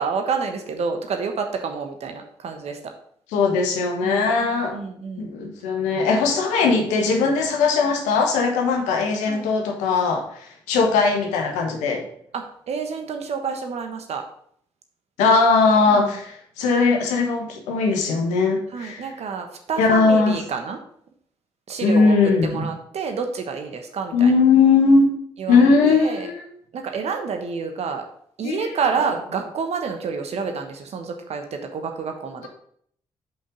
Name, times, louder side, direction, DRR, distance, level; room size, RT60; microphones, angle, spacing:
voice 1, 0.0-2.8 4.0-5.3 9.3-9.5 12.3-14.2 15.9-16.1 18.7-20.8 21.7-22.2 22.4-24.3 25.4-26.3 26.7-28.0 28.4-32.5, right 5 dB, 60° right, 5 dB, 1.2 m, -28 dB
voice 2, 3.3-4.8 5.2-12.0 15.2-19.0 19.8-20.4 21.8-22.7 24.1-25.1 25.5-26.4 28.4-28.7, left 4 dB, 80° left, 2 dB, 1.2 m, -19 dB
5.5 x 5.3 x 5.1 m, 0.65 s
hypercardioid pair, 40°, 12 cm